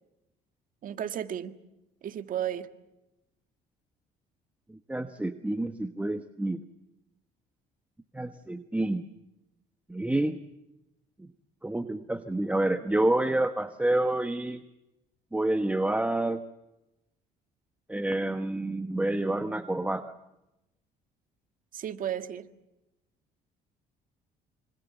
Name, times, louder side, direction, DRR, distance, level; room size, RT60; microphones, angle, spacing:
voice 1, 0.8-1.6 2.0-2.7 21.7-22.5, right 10 dB, 55° right, 9 dB, 1.8 m, -33 dB
voice 2, 4.7-6.6 8.1-9.0 9.9-10.4 11.2-11.3 11.6-14.6 15.3-16.4 17.9-20.1, right 1 dB, 10° right, 8 dB, 1.1 m, -28 dB
26.5 x 25.5 x 7.0 m, 0.93 s
cardioid pair, 110°, 17 cm